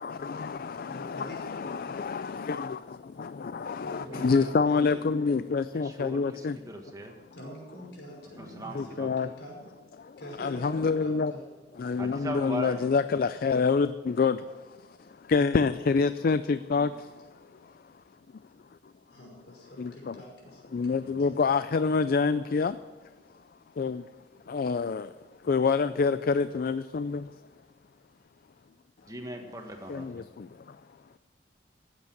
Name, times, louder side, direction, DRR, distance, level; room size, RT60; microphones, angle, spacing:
voice 1, 0.0-6.6 8.7-9.3 10.0-11.3 11.8-16.9 17.6-17.7 19.8-20.2 20.7-22.8 23.8-24.1 24.5-25.1 25.4-27.3 29.9-30.8, left 4 dB, 55° left, 0.4 m, -27 dB
voice 2, 0.8-2.0 3.8-5.1 7.3-9.6 10.2-11.4 16.7-17.1 19.1-21.5, equal, 70° left, 5.7 m, -45 dB
voice 3, 4.0-4.5 5.7-7.1 8.4-9.1 12.0-12.8 21.0-21.2 29.1-30.2, right 1 dB, 20° right, 1.6 m, -39 dB
16.0 x 8.3 x 7.2 m
head